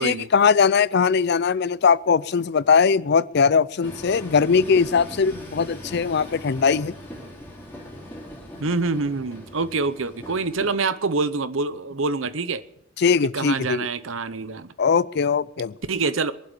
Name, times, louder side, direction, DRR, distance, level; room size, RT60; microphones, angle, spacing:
voice 1, 0.0-6.9 13.0-13.9 14.8-15.7, left 5 dB, 55° left, 0.5 m, -20 dB
Train, 3.8-10.7, equal, 10° left, 3.1 m, -40 dB
voice 2, 8.6-12.6 13.3-14.7 15.9-16.3, right 4 dB, 80° right, 0.8 m, -26 dB
22.0 x 7.7 x 7.1 m
head